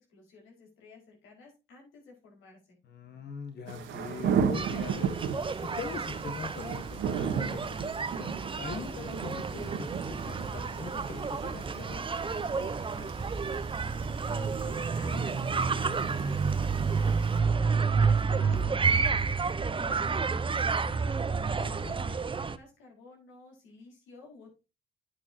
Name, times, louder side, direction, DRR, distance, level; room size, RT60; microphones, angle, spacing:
voice 1, 0.0-2.8 14.3-24.5, left 4 dB, 90° left, -1 dB, 5.1 m, -52 dB
voice 2, 2.8-5.1 5.6-13.1 21.6-21.9, left 5 dB, 55° left, 6 dB, 1.6 m, -42 dB
sound 1, 3.7-17.4, right 7 dB, 80° right, 1.7 m, -36 dB
sound 2, 4.5-22.6, right 5 dB, 25° right, 0.8 m, -30 dB
sound 3, 17.2-17.4 18.0-18.9 19.2-20.6 21.5-21.6, left 4 dB, 35° left, 1.6 m, -53 dB
9.5 x 8.8 x 2.8 m, 0.29 s
cardioid pair, 90°, 20 cm